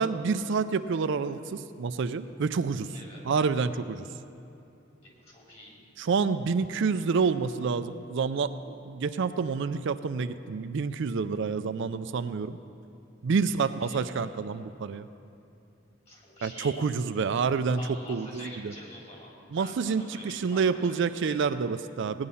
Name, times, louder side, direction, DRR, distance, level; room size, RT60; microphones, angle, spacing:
voice 1, 0.0-3.0 3.2-4.1 6.0-12.6 13.2-15.1 16.4-17.8 18.1-18.7 19.5-22.3, right 5 dB, 65° right, 11 dB, 0.4 m, -28 dB
voice 2, 5.0-5.8 13.8-14.0 16.1-16.7 17.7-19.3 19.6-21.4, left 1 dB, 35° left, -3 dB, 3.3 m, -46 dB
17.0 x 9.6 x 5.6 m, 2.7 s
head